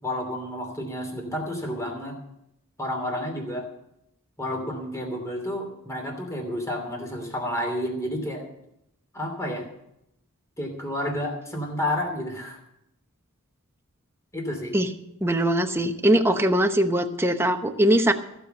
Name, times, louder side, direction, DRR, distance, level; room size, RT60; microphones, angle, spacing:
voice 1, 0.0-2.1 2.8-3.7 4.4-8.4 9.1-9.7 10.6-12.6 14.3-14.7, left 1 dB, 15° left, 2 dB, 2.8 m, -30 dB
voice 2, 15.2-18.1, right 1 dB, 10° right, 6 dB, 0.9 m, -21 dB
15.0 x 6.9 x 7.8 m, 0.81 s
head